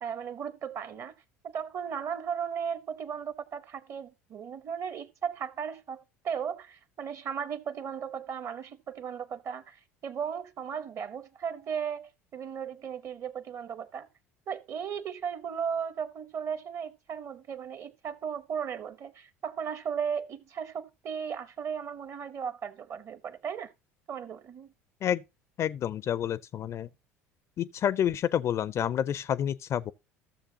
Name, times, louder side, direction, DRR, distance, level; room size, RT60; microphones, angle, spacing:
voice 1, 0.0-1.1 1.4-14.1 14.5-23.7 24.1-24.7, right 7 dB, 40° right, 0.8 m, -36 dB
voice 2, 25.6-26.9 27.6-29.9, left 10 dB, 40° left, 0.4 m, -29 dB
14.5 x 6.9 x 2.8 m
figure-of-eight pair, 65°, 7 cm